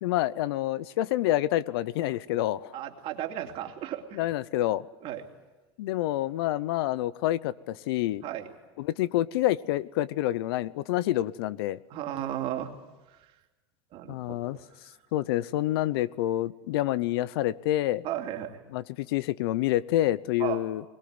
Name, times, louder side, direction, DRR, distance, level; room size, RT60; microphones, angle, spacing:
voice 1, 0.0-2.7 4.1-4.8 5.8-8.2 8.8-11.8 14.1-14.6 15.1-18.0 18.7-20.8, left 14 dB, 80° left, 19 dB, 0.8 m, -27 dB
voice 2, 2.7-4.2 5.0-5.2 8.2-8.5 11.9-12.7 13.1-13.2 13.9-14.6 18.0-18.6 20.4-20.6, right 11 dB, 50° right, 4 dB, 2.7 m, -34 dB
22.0 x 20.0 x 9.6 m, 1.2 s
supercardioid pair, 125°, 13 cm